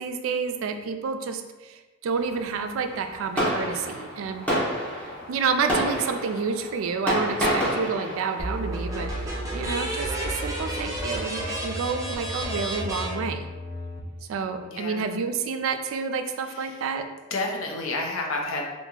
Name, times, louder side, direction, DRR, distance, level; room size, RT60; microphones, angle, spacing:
voice 1, 0.0-4.5 5.3-13.5 14.3-17.1, right 5 dB, 70° right, 8 dB, 0.3 m, -29 dB
Fireworks, 2.1-11.5, equal, 10° left, 0.9 m, -31 dB
sound 1, 8.4-14.0, equal, 15° right, 0.6 m, -31 dB
voice 2, 14.6-15.1 16.5-16.8 17.3-18.7, left 2 dB, 70° left, 1 dB, 0.6 m, -30 dB
2.8 x 2.4 x 3.7 m, 1.2 s
head